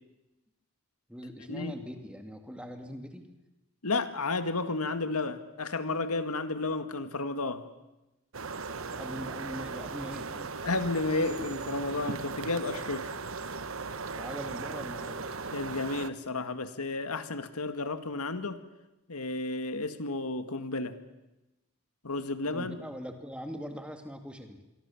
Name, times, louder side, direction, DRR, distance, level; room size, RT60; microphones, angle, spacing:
voice 1, 1.1-3.3 8.7-10.6 14.1-15.5 22.5-24.6, equal, 5° right, 5 dB, 2.4 m, -42 dB
voice 2, 3.8-7.6 10.6-13.1 15.5-18.6 19.1-21.0 22.0-22.8, left 3 dB, 85° left, 9 dB, 2.0 m, -32 dB
sound 1, 8.3-16.1, right 4 dB, 65° right, 1.1 m, -38 dB
27.0 x 24.0 x 7.3 m, 0.99 s
head